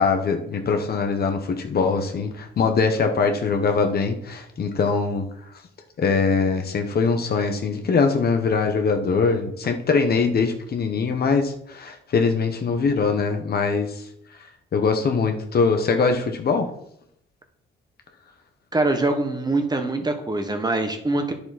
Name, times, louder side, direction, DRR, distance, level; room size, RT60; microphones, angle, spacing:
voice 1, 0.0-5.3 6.0-14.0 14.7-16.7, left 4 dB, 50° left, 5 dB, 1.3 m, -22 dB
voice 2, 18.7-21.3, right 2 dB, 20° right, 6 dB, 1.4 m, -23 dB
9.8 x 6.9 x 4.3 m, 0.74 s
cardioid pair, 90°, 20 cm